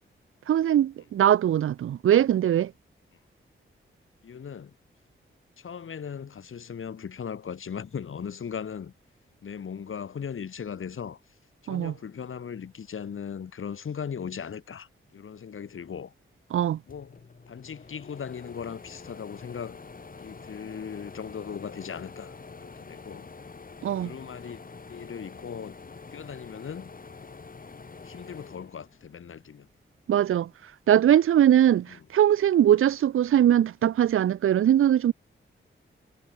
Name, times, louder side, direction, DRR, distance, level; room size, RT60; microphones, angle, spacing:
voice 1, 0.5-2.7 11.7-11.9 16.5-16.8 23.8-24.1 30.1-30.5 30.9-35.1, right 10 dB, 80° right, 0.5 m, -21 dB
voice 2, 4.2-4.7 5.6-8.9 9.4-11.2 11.6-16.1 16.9-19.8 20.2-22.3 22.6-23.3 24.0-24.6 24.9-25.8 26.1-26.9 28.0-29.7 31.9-32.1, left 7 dB, 75° left, 3.7 m, -38 dB
sound 1, 16.9-29.5 29.9-31.0, left 4 dB, 40° left, 4.3 m, -46 dB
wide cardioid pair, 100°, 21 cm